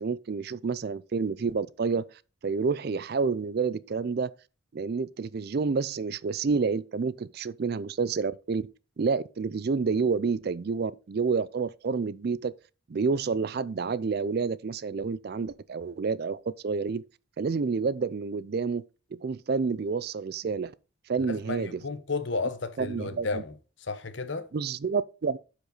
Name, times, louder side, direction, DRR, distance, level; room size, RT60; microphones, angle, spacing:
voice 1, 0.0-2.1 2.4-4.3 4.7-8.7 9.0-12.5 12.9-17.0 17.4-18.8 19.2-20.7 21.1-21.8 22.8-23.4 24.5-25.4, right 5 dB, 50° right, 0.4 m, -29 dB
voice 2, 21.3-23.5 23.8-24.5, left 3 dB, 60° left, 0.9 m, -33 dB
11.5 x 5.0 x 3.9 m
head